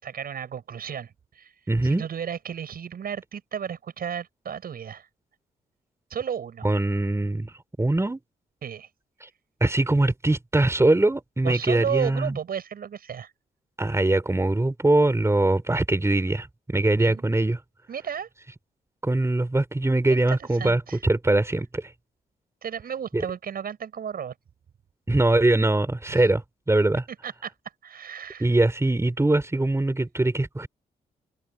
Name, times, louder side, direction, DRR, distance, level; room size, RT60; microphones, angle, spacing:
voice 1, 0.0-1.5 1.8-5.1 6.1-6.7 8.6-8.9 11.4-13.3 17.0-17.2 17.9-18.3 20.3-21.0 22.6-24.3 26.1-26.3 27.2-27.5 27.8-28.5, right 8 dB, 65° right, 7.4 m, -33 dB
voice 2, 1.7-2.0 6.6-7.5 7.8-8.2 9.2-9.3 9.6-12.3 13.8-17.6 19.0-21.9 23.1-23.2 25.1-26.4 26.7-27.0 28.4-30.7, right 2 dB, 15° right, 4.6 m, -22 dB
cardioid pair, 65°, 16 cm